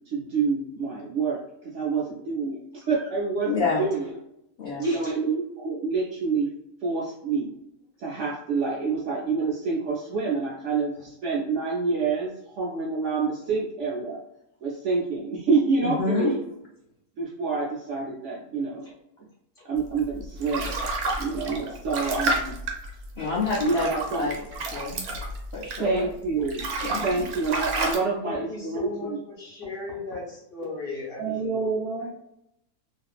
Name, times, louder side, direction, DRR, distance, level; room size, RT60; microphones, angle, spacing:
voice 1, 0.1-4.0 4.8-6.5 6.8-7.5 8.0-14.2 14.6-16.4 17.2-18.9 19.6-20.7 21.2-22.5 23.6-24.3 25.8-26.6 27.0-29.2 31.2-32.1, right 4 dB, 70° right, -4 dB, 0.7 m, -27 dB
voice 2, 3.5-3.8 4.6-4.9 15.8-16.3 22.0-22.1 23.2-23.9 24.2-24.4 24.7-25.0 25.5-26.1 26.8-27.1, left 4 dB, 65° left, -4 dB, 0.6 m, -27 dB
voice 3, 4.8-5.2 11.0-11.1 18.8-18.9 19.6-19.7 21.6-21.8 28.0-31.6 32.0-32.1, left 3 dB, 40° left, -5 dB, 1.1 m, -37 dB
sound 1, 20.0-26.1 26.4-28.0, right 2 dB, 90° right, 1.2 m, -30 dB
2.5 x 2.5 x 2.3 m, 0.81 s
omnidirectional pair, 1.6 m